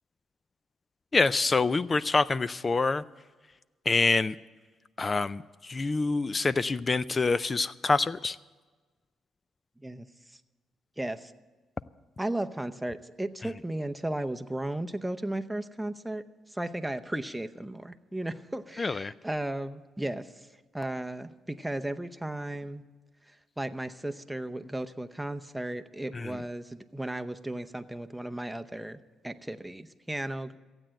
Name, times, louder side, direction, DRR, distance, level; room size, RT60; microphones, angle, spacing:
voice 1, 1.1-3.0 3.9-4.3 5.0-8.4 18.8-19.1 26.1-26.4, left 3 dB, 30° left, 17 dB, 0.3 m, -26 dB
voice 2, 11.0-11.3 12.2-16.2 16.5-20.3 20.7-22.8 23.6-30.6, right 1 dB, 5° right, 8 dB, 0.7 m, -35 dB
15.0 x 9.0 x 7.6 m, 1.3 s
cardioid pair, 90°, 0 cm